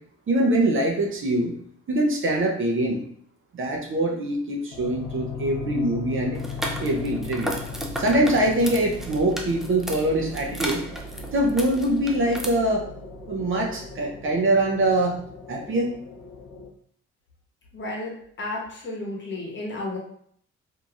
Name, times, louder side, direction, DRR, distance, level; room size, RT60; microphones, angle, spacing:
voice 1, 0.3-1.6 1.9-3.0 3.5-6.4 6.8-7.5 8.0-10.9 11.3-12.9 13.3-15.2 15.5-15.9, right 1 dB, 45° right, 0 dB, 0.7 m, -23 dB
sound 1, 4.7-16.7, left 4 dB, 90° left, 0.7 m, -37 dB
sound 2, 6.3-12.4, equal, ahead, 0.4 m, -35 dB
voice 2, 17.7-18.1 18.4-20.0, left 2 dB, 40° left, -2 dB, 1.0 m, -32 dB
3.0 x 2.7 x 2.4 m, 0.62 s
cardioid pair, 90°, 30 cm